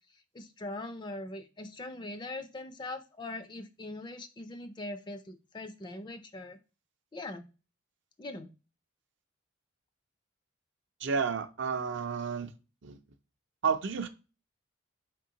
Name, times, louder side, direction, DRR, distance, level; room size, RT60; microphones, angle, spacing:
voice 1, 0.3-6.6 7.1-7.5 8.2-8.5, left 2 dB, 20° left, 0.4 m, -41 dB
voice 2, 11.0-12.5 12.8-13.0 13.6-14.1, right 6 dB, 60° right, 0.5 m, -31 dB
4.4 x 3.7 x 2.8 m
head